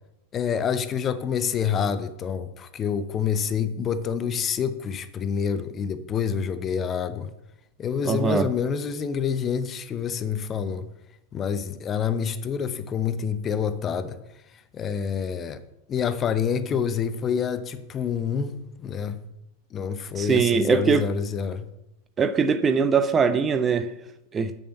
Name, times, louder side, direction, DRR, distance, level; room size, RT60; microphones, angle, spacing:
voice 1, 0.3-7.3 7.8-10.9 11.3-14.2 14.7-15.6 15.9-19.2 19.7-21.7, left 7 dB, 25° left, 0.7 m, -27 dB
voice 2, 8.1-8.5 20.1-21.0 22.2-23.9 24.3-24.5, right 5 dB, 20° right, 0.6 m, -21 dB
6.9 x 6.8 x 7.7 m
figure-of-eight pair, 90°, 0 cm